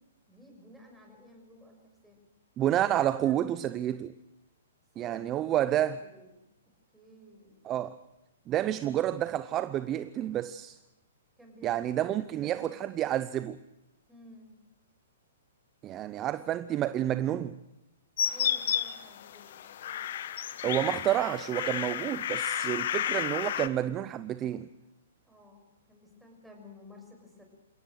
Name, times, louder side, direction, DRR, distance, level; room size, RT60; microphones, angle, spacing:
voice 1, 0.3-1.8 2.0-2.3 3.0-3.7 4.9-6.3 6.9-7.6 11.4-12.9 14.1-14.5 18.2-20.1 20.5-20.8 25.2-27.4, left 1 dB, 5° right, 6.5 m, -53 dB
voice 2, 2.6-4.1 5.0-6.0 7.6-8.0 8.5-10.8 11.6-13.6 15.8-17.6 20.6-24.7, right 12 dB, 25° right, 0.7 m, -29 dB
sound 1, 18.2-23.7, left 10 dB, 60° left, 1.2 m, -32 dB
28.5 x 17.0 x 6.4 m
hypercardioid pair, 135°, 0 cm